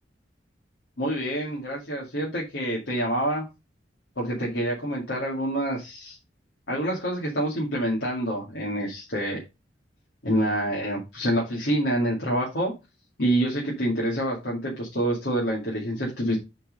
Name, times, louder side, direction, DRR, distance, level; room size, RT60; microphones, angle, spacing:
voice 1, 1.0-3.5 4.2-6.2 6.7-9.4 10.2-12.7 13.2-16.4, right 1 dB, 65° left, -4 dB, 2.3 m, -27 dB
6.9 x 4.7 x 5.3 m, 0.25 s
head